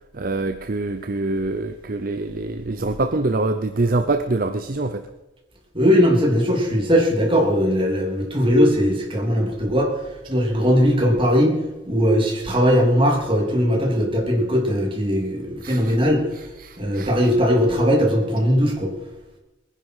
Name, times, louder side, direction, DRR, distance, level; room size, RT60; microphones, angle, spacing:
voice 1, 0.1-5.1 15.6-16.0 16.4-17.1, right 2 dB, 50° right, 8 dB, 0.7 m, -25 dB
voice 2, 5.7-9.9 10.3-11.6 11.9-16.2 16.8-18.9, equal, 30° right, 0 dB, 3.3 m, -19 dB
22.0 x 10.5 x 4.9 m, 1.1 s
head